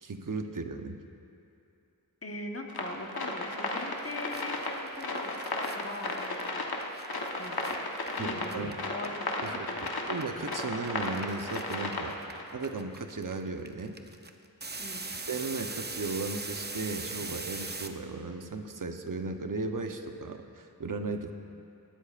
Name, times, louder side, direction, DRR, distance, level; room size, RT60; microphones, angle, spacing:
voice 1, 0.0-1.0 8.2-8.8 9.4-9.7 10.1-12.2 12.5-14.0 15.2-21.3, right 3 dB, 60° right, 6 dB, 0.8 m, -36 dB
voice 2, 2.2-6.7 7.4-7.8 8.2-10.2 14.8-15.1, left 1 dB, 40° left, 1 dB, 1.3 m, -41 dB
sound 1, 2.7-12.4, left 2 dB, 80° left, 1.2 m, -34 dB
sound 2, 3.7-3.8 4.0-9.5 9.8-17.9, right 3 dB, 30° right, 0.7 m, -41 dB
19.0 x 13.0 x 2.5 m, 2.7 s
wide cardioid pair, 60°, 37 cm